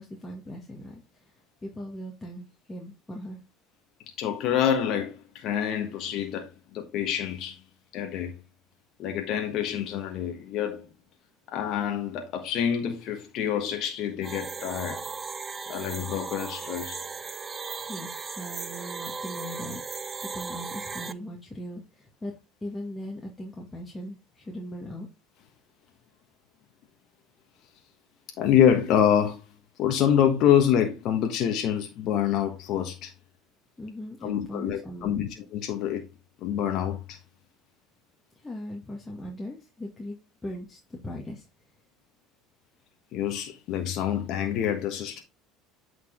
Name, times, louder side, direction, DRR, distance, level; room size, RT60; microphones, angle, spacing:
voice 1, 0.0-3.4 17.8-22.3 22.6-25.1 33.8-35.3 38.3-40.2 40.4-41.5, equal, 15° left, 2.0 m, -39 dB
voice 2, 4.2-7.6 7.9-8.3 9.0-10.9 11.5-15.0 15.7-17.0 28.4-29.4 29.8-33.1 34.2-36.1 36.4-37.2 43.1-45.2, left 9 dB, 60° left, 1.3 m, -26 dB
sound 1, 14.2-21.1, right 5 dB, 30° right, 0.6 m, -37 dB
8.3 x 4.7 x 3.6 m
hypercardioid pair, 80°, 0 cm